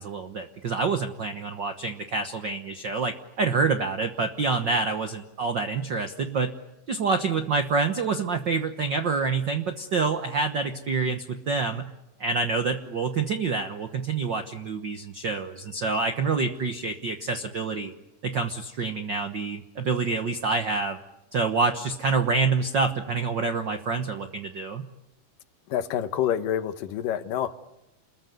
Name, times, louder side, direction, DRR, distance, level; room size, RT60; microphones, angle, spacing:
voice 1, 0.0-6.5 6.9-11.9 12.2-17.9 18.2-21.0 21.3-24.9, right 4 dB, 70° right, 7 dB, 1.0 m, -27 dB
voice 2, 25.7-27.5, left 10 dB, 90° left, 11 dB, 2.8 m, -27 dB
28.5 x 21.0 x 9.5 m, 0.93 s
omnidirectional pair, 3.8 m